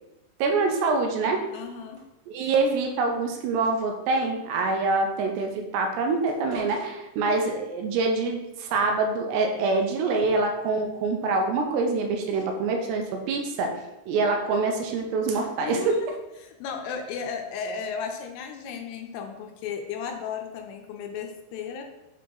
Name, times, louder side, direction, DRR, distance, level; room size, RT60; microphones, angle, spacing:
voice 1, 0.4-1.4 2.3-13.8 14.1-16.0, right 3 dB, 85° right, 3 dB, 2.7 m, -25 dB
voice 2, 1.5-2.1 15.6-16.0 16.4-21.8, left 6 dB, 80° left, 3 dB, 2.6 m, -35 dB
6.8 x 3.8 x 3.8 m, 0.97 s
omnidirectional pair, 5.0 m